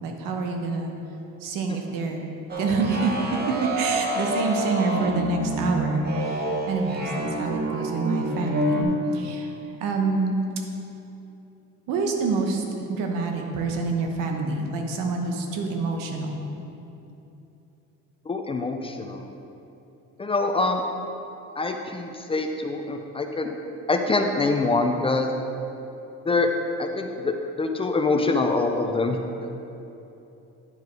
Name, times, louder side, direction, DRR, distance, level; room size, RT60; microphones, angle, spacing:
voice 1, 0.0-0.9 1.4-2.3 2.6-3.1 3.8-9.5 9.8-10.3 11.9-12.6 12.9-16.4, right 3 dB, 90° right, 2 dB, 1.1 m, -27 dB
sound 1, 2.5-8.8, right 1 dB, 30° right, 0.8 m, -28 dB
voice 2, 18.3-19.3 20.2-20.8 21.6-23.6 23.9-25.3 26.3-26.5 26.8-29.5, left 3 dB, 20° left, 4 dB, 0.4 m, -25 dB
9.5 x 4.8 x 4.6 m, 2.9 s
cardioid pair, 130°, 32 cm